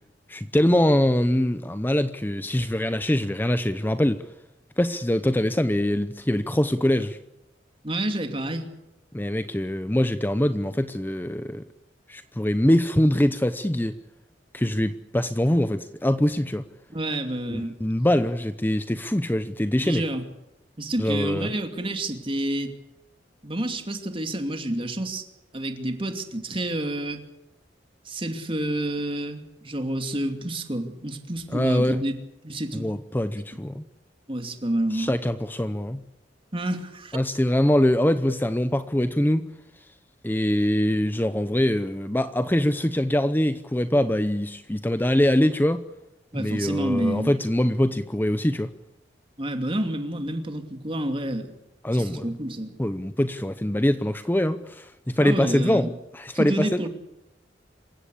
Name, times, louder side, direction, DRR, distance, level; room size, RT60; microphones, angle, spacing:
voice 1, 0.3-4.2 4.8-7.2 9.1-11.6 12.1-14.0 14.5-16.6 17.5-20.0 21.0-21.5 31.5-32.0 32.7-33.8 34.9-36.0 37.1-39.5 40.2-45.8 46.3-48.7 51.8-52.3 52.8-56.9, left 1 dB, 10° left, 0.7 m, -23 dB
voice 2, 7.8-8.7 16.9-17.8 19.8-20.2 20.8-22.7 23.4-25.3 25.5-27.2 28.0-32.1 32.4-32.9 34.3-35.1 36.5-37.2 46.3-47.3 49.4-51.5 51.9-52.7 55.2-55.9 56.3-56.9, right 1 dB, 30° right, 2.7 m, -29 dB
27.0 x 16.0 x 8.5 m
head